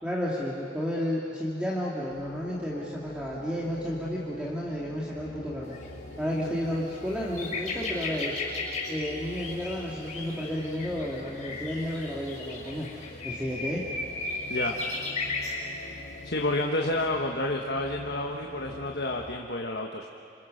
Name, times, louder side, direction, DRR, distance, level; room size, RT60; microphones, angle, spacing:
voice 1, 0.0-5.8 6.2-8.4 8.9-12.9 13.2-13.8 17.2-17.3, equal, 5° right, -5 dB, 2.2 m, -32 dB
sound 1, 2.1-19.4, left 1 dB, 85° left, 3.3 m, -44 dB
sound 2, 5.7-5.9 6.3-6.4 6.7-15.6 16.3-16.5, left 3 dB, 35° left, 6.2 m, -35 dB
voice 2, 16.2-20.1, left 1 dB, 60° left, 1 dB, 1.3 m, -30 dB
27.5 x 27.0 x 6.5 m, 2.5 s
head